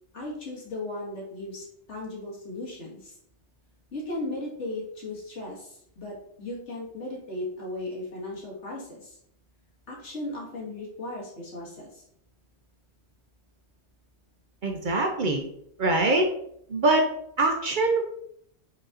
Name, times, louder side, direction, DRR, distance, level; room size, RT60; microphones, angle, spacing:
voice 1, 0.1-3.1 3.9-9.2 9.9-12.0, left 2 dB, 75° left, -4 dB, 1.9 m, -36 dB
voice 2, 14.6-15.4 15.8-16.3 16.7-17.1 17.4-18.0, right 2 dB, 55° right, 2 dB, 0.6 m, -23 dB
5.3 x 4.0 x 2.4 m, 0.70 s
omnidirectional pair, 1.2 m